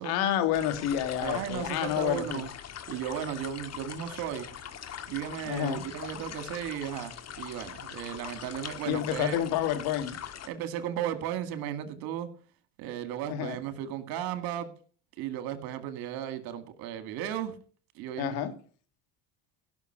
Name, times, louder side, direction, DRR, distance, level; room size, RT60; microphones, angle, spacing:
voice 1, 0.0-2.4 5.4-5.9 8.9-10.2 13.3-13.6 18.2-18.5, left 10 dB, 75° left, 2.4 m, -29 dB
sound 1, 0.5-10.5, left 9 dB, 45° left, 1.8 m, -42 dB
voice 2, 1.2-2.5 2.9-4.5 5.1-9.4 10.4-12.3 12.8-14.7 15.2-17.6 18.0-18.4, right 10 dB, 75° right, 2.1 m, -35 dB
17.0 x 6.4 x 6.6 m
supercardioid pair, 90°, 38 cm